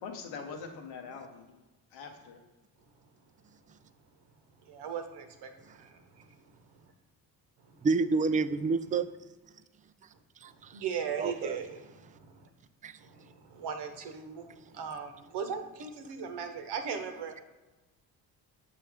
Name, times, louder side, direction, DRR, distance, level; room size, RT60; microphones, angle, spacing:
voice 1, 0.0-1.6 1.9-2.4, left 5 dB, 85° left, 3 dB, 1.0 m, -43 dB
voice 2, 4.6-6.9 7.6-7.9 10.4-12.5 13.0-17.4, right 6 dB, 70° right, 6 dB, 1.0 m, -39 dB
voice 3, 7.8-9.1 10.4-10.7 11.2-11.6 12.8-12.9, right 4 dB, 20° right, 12 dB, 0.3 m, -28 dB
6.8 x 5.3 x 3.4 m, 1.1 s
supercardioid pair, 55°, 42 cm